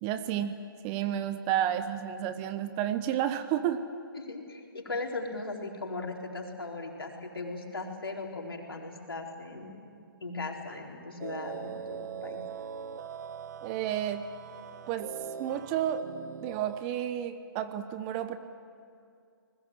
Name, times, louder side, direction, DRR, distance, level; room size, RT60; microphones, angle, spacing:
voice 1, 0.0-0.6 0.8-3.9 13.6-14.3 14.9-15.1 15.4-16.1 16.4-18.4, right 10 dB, 25° right, 11 dB, 1.0 m, -31 dB
voice 2, 4.2-9.9 10.2-12.4, left 3 dB, 85° left, 1 dB, 4.3 m, -38 dB
sound 1, 11.2-16.8, right 8 dB, 50° right, 1.1 m, -41 dB
27.5 x 20.5 x 7.7 m, 2.4 s
hypercardioid pair, 145°, 12 cm